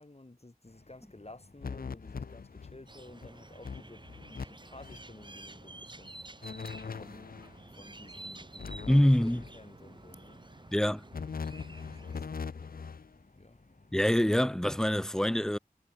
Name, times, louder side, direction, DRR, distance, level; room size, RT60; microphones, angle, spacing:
voice 1, 0.0-6.2 6.9-7.3 7.6-10.4 11.7-13.0 13.4-13.6, left 2 dB, 45° left, 4.3 m, -53 dB
sound 1, 0.6-15.0, left 2 dB, 60° left, 3.2 m, -61 dB
sound 2, 1.6-2.8 3.2-3.3 3.6-4.4 4.7-5.0 6.4-7.6 8.6-9.6 11.1-13.1, left 5 dB, 75° left, 0.5 m, -41 dB
sound 3, 2.9-12.3, right 2 dB, 30° right, 0.8 m, -50 dB
voice 2, 8.9-9.4 10.7-11.0 13.9-15.6, equal, 5° left, 0.3 m, -25 dB
wide cardioid pair, 50°, 15 cm